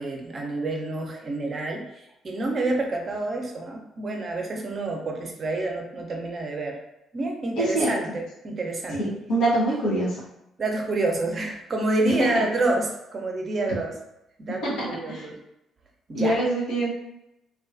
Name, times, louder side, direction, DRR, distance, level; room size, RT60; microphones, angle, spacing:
voice 1, 0.0-6.8 7.1-9.0 10.6-13.9 14.4-15.3 16.1-16.4, right 2 dB, 40° right, 1 dB, 0.5 m, -28 dB
voice 2, 7.6-7.9 9.3-10.2 12.2-12.4 14.6-15.3 16.1-16.9, right 1 dB, 70° left, -6 dB, 0.6 m, -24 dB
2.4 x 2.2 x 2.4 m, 0.87 s
hypercardioid pair, 45°, 0 cm